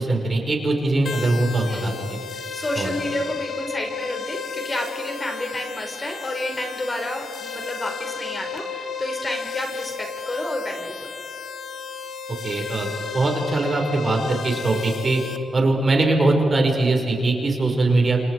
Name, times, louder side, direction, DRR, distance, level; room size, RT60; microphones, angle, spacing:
voice 1, 0.0-2.2 2.8-2.9 12.4-12.9 13.1-15.2 15.5-18.2, right 2 dB, 40° right, 2 dB, 5.2 m, -21 dB
sound 1, 1.1-15.4, left 5 dB, 65° left, 1.6 m, -33 dB
voice 2, 2.3-11.1, left 1 dB, 25° left, 2 dB, 5.4 m, -30 dB
28.0 x 28.0 x 4.9 m, 2.7 s
cardioid pair, 60°, 0 cm